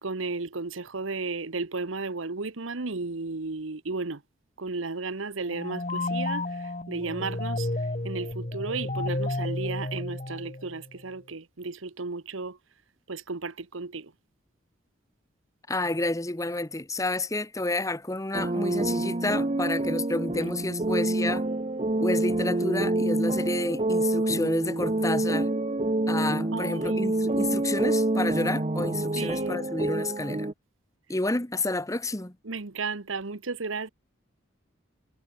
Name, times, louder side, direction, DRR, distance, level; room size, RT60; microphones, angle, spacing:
voice 1, 0.0-4.2 4.6-6.4 6.9-7.7 8.0-12.6 13.1-14.1 26.5-27.0 29.2-29.6 32.5-33.9, right 3 dB, 90° right, 1.2 m, -34 dB
sound 1, 5.4-10.9, left 2 dB, 35° left, 1.7 m, -32 dB
voice 2, 15.7-21.4 22.0-25.5 26.1-30.5 31.1-32.3, left 2 dB, 15° left, 1.2 m, -30 dB
sound 2, 18.3-30.5, right 2 dB, 30° right, 1.0 m, -27 dB
head